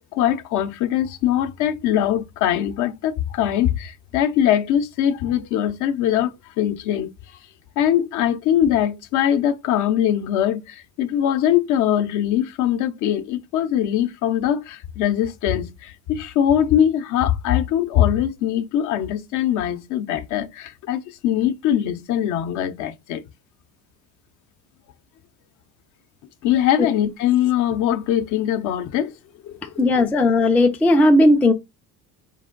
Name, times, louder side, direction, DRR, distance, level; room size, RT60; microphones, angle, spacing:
voice 1, 0.1-7.1 7.8-23.2 26.4-29.1 29.4-29.9, left 10 dB, 55° left, 0.7 m, -22 dB
voice 2, 29.8-31.5, left 1 dB, 5° left, 0.3 m, -16 dB
4.7 x 2.5 x 3.7 m
cardioid pair, 140°, 36 cm